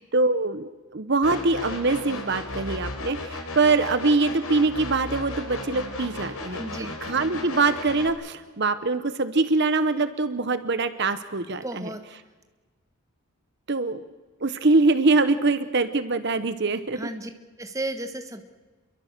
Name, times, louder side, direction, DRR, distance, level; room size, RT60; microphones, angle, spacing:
voice 1, 0.1-6.6 7.0-11.9 13.7-14.0 14.4-17.0, right 3 dB, 50° right, 12 dB, 0.9 m, -23 dB
sound 1, 1.2-8.1, left 2 dB, 80° left, 4.0 m, -35 dB
voice 2, 6.6-6.9 11.6-12.0 16.9-17.3 17.6-18.4, right 1 dB, 15° right, 7 dB, 1.4 m, -33 dB
27.5 x 22.5 x 6.7 m, 1.3 s
head